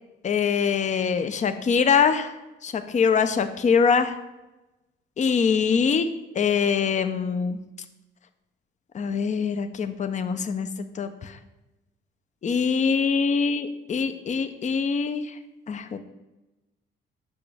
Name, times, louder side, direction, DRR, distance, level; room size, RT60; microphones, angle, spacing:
voice 1, 0.2-2.3 2.6-4.2 5.2-7.6 8.9-10.7 10.9-11.4 12.4-15.4 15.7-16.0, left 6 dB, 35° left, 9 dB, 0.6 m, -23 dB
8.4 x 5.9 x 3.3 m, 1.0 s
cardioid pair, 90°, 20 cm